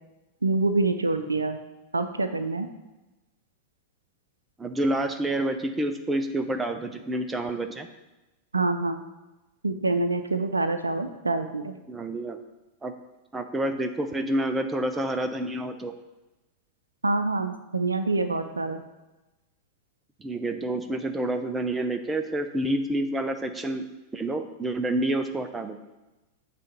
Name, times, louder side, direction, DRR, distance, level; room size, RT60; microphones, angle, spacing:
voice 1, 0.4-1.6 1.9-2.7 8.5-9.0 9.6-11.7 17.0-18.8, right 3 dB, 80° right, 8 dB, 0.5 m, -26 dB
voice 2, 4.6-7.9 11.9-12.4 12.8-12.9 13.3-15.9 20.2-25.8, right 1 dB, 15° right, 7 dB, 0.7 m, -28 dB
9.2 x 3.4 x 6.6 m, 1.1 s
figure-of-eight pair, 90°, 0 cm